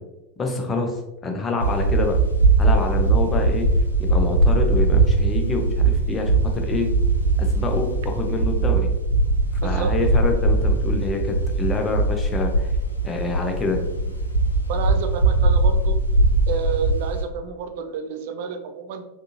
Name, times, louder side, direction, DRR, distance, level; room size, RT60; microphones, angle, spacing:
voice 1, 0.4-2.1 2.6-3.7 4.0-6.9 7.4-8.9 9.6-12.7 13.0-14.2, left 3 dB, 20° left, 3 dB, 0.6 m, -26 dB
sound 1, 1.6-17.2, right 3 dB, 85° left, 0.5 m, -20 dB
voice 2, 9.6-9.9 14.7-16.0 16.5-19.0, right 5 dB, 50° right, 7 dB, 0.4 m, -30 dB
3.5 x 2.6 x 2.8 m, 0.96 s
figure-of-eight pair, 90°, 0 cm